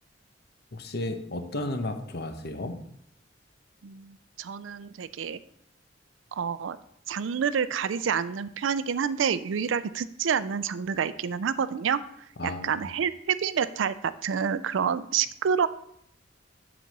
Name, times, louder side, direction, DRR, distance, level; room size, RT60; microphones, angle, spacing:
voice 1, 0.7-2.8 12.4-12.8, left 2 dB, 60° left, 6 dB, 0.9 m, -33 dB
voice 2, 3.8-5.4 6.4-6.8 7.1-12.0 12.4-15.7, right 7 dB, 80° right, 15 dB, 0.4 m, -28 dB
7.6 x 4.0 x 6.6 m, 0.71 s
head